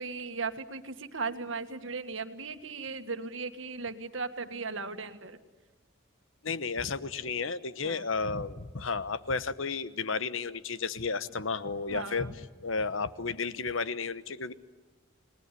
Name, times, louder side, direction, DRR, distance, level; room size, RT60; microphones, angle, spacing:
voice 1, 0.0-5.4 7.8-8.1 11.9-12.3, right 4 dB, 70° right, 8 dB, 1.7 m, -37 dB
voice 2, 6.4-12.3 12.6-14.5, left 4 dB, 75° left, 14 dB, 1.1 m, -32 dB
29.5 x 19.5 x 9.9 m, 1.3 s
head